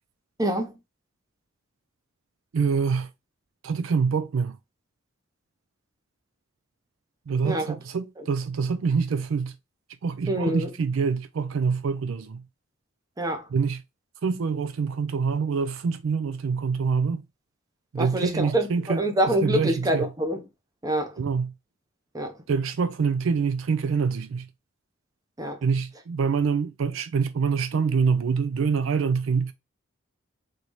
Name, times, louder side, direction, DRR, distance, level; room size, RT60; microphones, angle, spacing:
voice 1, 0.4-0.7 7.4-7.7 8.2-8.3 10.3-10.7 13.2-13.5 17.9-20.4 20.8-21.2 22.1-22.3 25.4-25.6, right 1 dB, 15° right, 0.7 m, -26 dB
voice 2, 2.5-3.1 3.6-4.6 7.3-9.5 10.0-12.4 13.5-13.8 14.2-17.2 17.9-20.1 21.2-21.5 22.5-24.5 25.6-29.5, right 5 dB, 70° right, 0.4 m, -25 dB
3.9 x 3.1 x 3.1 m
head